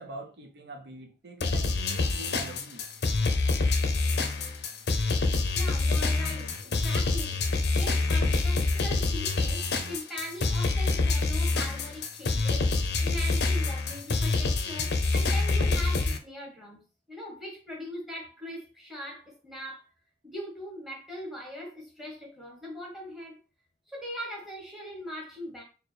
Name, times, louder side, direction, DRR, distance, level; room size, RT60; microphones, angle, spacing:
voice 1, 0.0-2.8, right 2 dB, 65° right, 0.6 m, -44 dB
sound 1, 1.4-16.2, left 3 dB, 65° left, 0.5 m, -26 dB
voice 2, 5.5-12.7 13.0-16.8 17.1-19.8 20.2-23.4 23.9-25.6, equal, ahead, 1.1 m, -41 dB
4.3 x 2.3 x 3.1 m
head